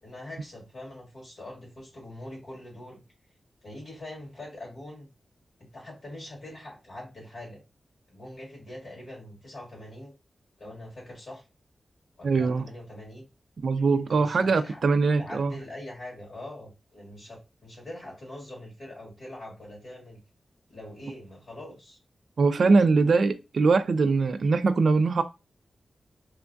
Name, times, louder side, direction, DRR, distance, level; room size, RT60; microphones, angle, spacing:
voice 1, 0.0-3.0 3.6-5.1 5.7-7.6 8.1-10.1 10.6-11.4 12.2-13.3 14.1-14.8 15.2-20.2 20.7-22.0, left 1 dB, 70° left, 1.8 m, -43 dB
voice 2, 12.2-12.7 13.6-15.5 22.4-25.2, right 4 dB, 75° right, 0.3 m, -22 dB
3.1 x 2.2 x 2.5 m
cardioid pair, 50°, 0 cm